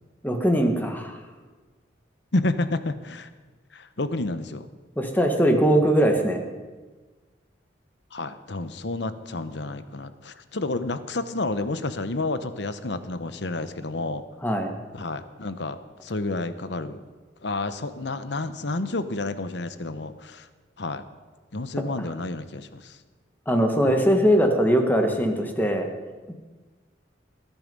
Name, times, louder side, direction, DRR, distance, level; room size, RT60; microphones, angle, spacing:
voice 1, 0.2-1.2 5.0-6.4 14.4-14.7 23.5-25.9, equal, 10° left, 4 dB, 1.6 m, -21 dB
voice 2, 2.3-3.3 3.7-4.7 8.1-14.2 14.9-17.0 17.4-20.5 20.8-21.0 21.5-23.0, left 2 dB, 65° left, 11 dB, 1.0 m, -30 dB
20.0 x 11.0 x 5.4 m, 1.3 s
head